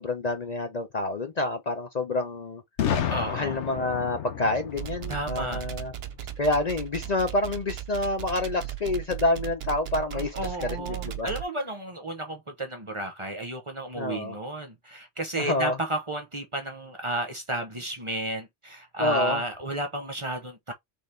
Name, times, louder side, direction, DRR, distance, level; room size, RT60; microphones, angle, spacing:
voice 1, 0.0-2.6 3.3-5.9 6.4-11.3 13.9-14.4 15.4-15.8 19.0-19.4, left 2 dB, 40° left, 0.7 m, -28 dB
Boom, 2.8-6.6, left 8 dB, 75° left, 1.1 m, -32 dB
voice 2, 3.1-3.6 5.1-5.7 10.1-20.7, right 1 dB, 30° right, 0.9 m, -32 dB
sound 1, 4.7-11.4, right 12 dB, 65° right, 0.9 m, -36 dB
4.1 x 3.6 x 3.3 m
omnidirectional pair, 1.2 m